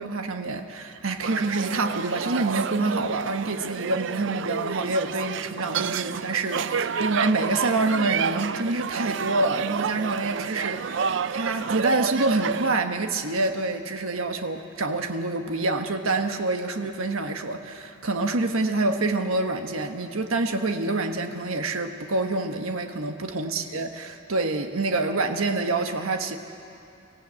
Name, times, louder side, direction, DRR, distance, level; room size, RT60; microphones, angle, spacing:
voice 1, 0.0-26.4, right 2 dB, 85° right, 6 dB, 1.2 m, -27 dB
sound 1, 1.2-12.8, right 6 dB, 60° right, 0.4 m, -30 dB
24.0 x 16.0 x 8.5 m, 2.6 s
head